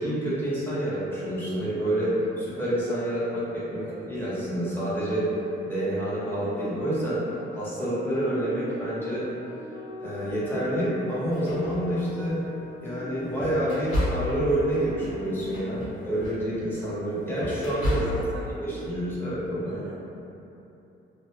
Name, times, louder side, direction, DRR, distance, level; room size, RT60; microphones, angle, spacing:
voice 1, 0.0-5.3 5.6-7.2 7.5-9.2 10.0-12.4 12.8-18.1 18.6-19.8, right 1 dB, 10° left, -10 dB, 0.9 m, -28 dB
voice 2, 3.7-4.1 17.9-18.6 19.6-20.0, right 3 dB, 70° right, -3 dB, 0.4 m, -42 dB
sound 1, 5.2-10.7 11.3-16.5, left 1 dB, 65° left, 0.5 m, -42 dB
sound 2, 10.3-10.4 11.1-12.5 13.0-18.5, left 1 dB, 85° left, 0.9 m, -33 dB
2.4 x 2.2 x 2.7 m, 2.9 s
cardioid pair, 90°, 20 cm